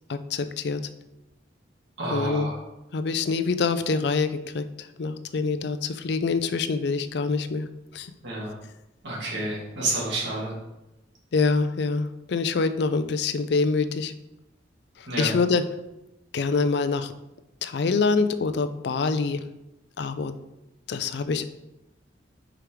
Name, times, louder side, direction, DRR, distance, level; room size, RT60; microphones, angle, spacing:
voice 1, 0.1-0.8 2.1-2.5 2.9-7.7 7.9-8.1 11.3-14.1 15.0-15.6 16.3-17.1 17.6-19.4 20.0-20.3 20.9-21.4, left 4 dB, 65° left, 11 dB, 0.4 m, -25 dB
voice 2, 2.0-2.5 8.2-8.5 9.0-10.6 15.1-15.3, right 2 dB, 75° right, -5 dB, 2.3 m, -29 dB
5.0 x 4.5 x 4.9 m, 0.92 s
head